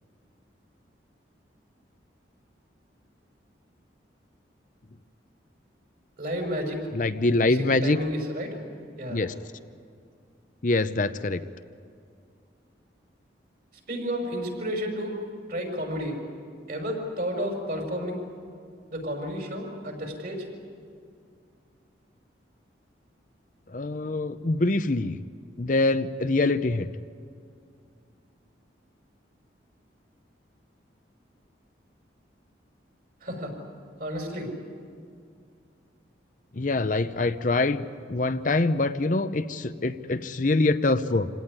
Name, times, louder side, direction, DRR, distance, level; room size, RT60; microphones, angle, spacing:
voice 1, 6.2-6.8 7.4-8.6 9.0-9.2 13.9-15.1 15.5-16.2 16.7-18.2 18.9-20.5 33.2-33.5 34.0-34.5, equal, 50° right, 3 dB, 5.8 m, -31 dB
voice 2, 6.9-8.0 9.1-9.3 10.6-11.4 23.7-25.2 25.6-26.9 36.6-41.3, left 2 dB, 45° left, 10 dB, 0.7 m, -24 dB
27.0 x 17.5 x 9.7 m, 2.3 s
head